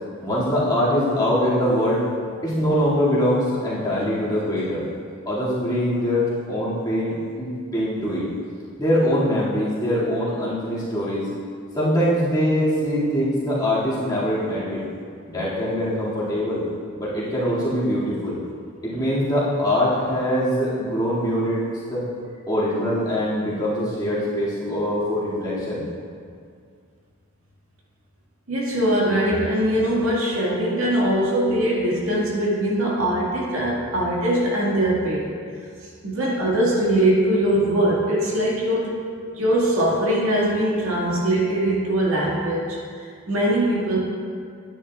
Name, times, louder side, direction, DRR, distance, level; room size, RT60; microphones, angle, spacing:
voice 1, 0.2-2.0 2.4-4.8 5.3-8.3 8.8-11.3 11.7-14.8 15.3-16.6 17.0-18.4 18.8-21.6 21.9-22.0 22.5-25.8, equal, 20° left, -11 dB, 2.3 m, -23 dB
voice 2, 28.5-35.3 36.0-39.0 39.4-42.8 43.3-44.0, right 1 dB, 70° right, -5 dB, 2.0 m, -21 dB
10.5 x 9.9 x 2.4 m, 2.2 s
head